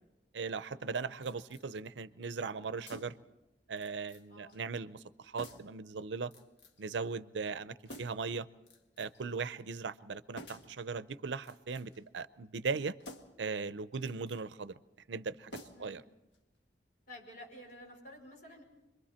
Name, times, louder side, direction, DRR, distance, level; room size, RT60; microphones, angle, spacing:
voice 1, 0.3-3.1 3.7-6.3 6.8-8.5 9.0-12.9 13.4-14.7 15.1-16.0, right 4 dB, 85° right, 16 dB, 0.6 m, -38 dB
sound 1, 1.2-1.7 2.8-3.3 3.8-4.2 4.5-4.6 5.4-5.8 6.3-6.9 7.9-8.3 8.7-9.3 10.4-10.8 11.4-12.0 13.0-13.5 13.9-14.4 15.5-16.0 16.3-16.4, equal, 65° left, 1.7 m, -51 dB
voice 2, 17.1-18.6, left 1 dB, 50° left, 0 dB, 5.1 m, -51 dB
27.0 x 22.5 x 4.3 m, 0.99 s
head